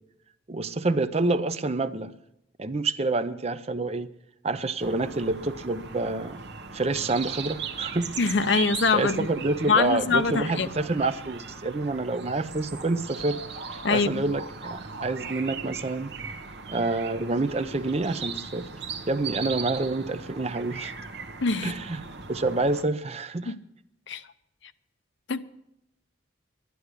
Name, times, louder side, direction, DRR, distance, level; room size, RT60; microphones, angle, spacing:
voice 1, 0.5-2.1 2.6-4.1 4.4-6.4 6.7-8.1 8.9-13.4 13.7-16.1 16.7-18.7 19.1-20.9 21.6-22.0 22.3-23.5, right 2 dB, 30° right, 0.6 m, -27 dB
sound 1, 4.8-22.8, right 5 dB, 55° right, 1.0 m, -38 dB
voice 2, 8.2-9.3 9.7-10.7 13.8-14.2 21.4-21.7 23.5-23.6 24.1-24.2 25.3-25.4, left 4 dB, 65° left, 0.7 m, -24 dB
11.5 x 11.0 x 8.1 m
head